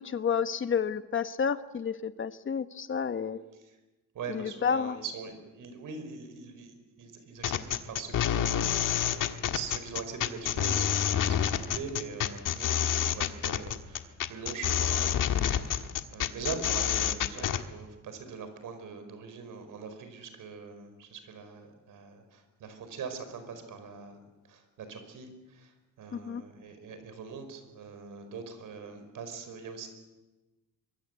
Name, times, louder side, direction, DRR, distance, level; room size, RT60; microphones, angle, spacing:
voice 1, 0.0-3.4 4.3-5.0 26.1-26.4, left 7 dB, 40° left, 11 dB, 1.1 m, -30 dB
voice 2, 4.1-29.9, right 5 dB, 80° right, 9 dB, 5.0 m, -42 dB
sound 1, 7.4-17.6, left 10 dB, 80° left, 1.5 m, -28 dB
24.0 x 23.0 x 8.2 m, 1.1 s
cardioid pair, 135°, 32 cm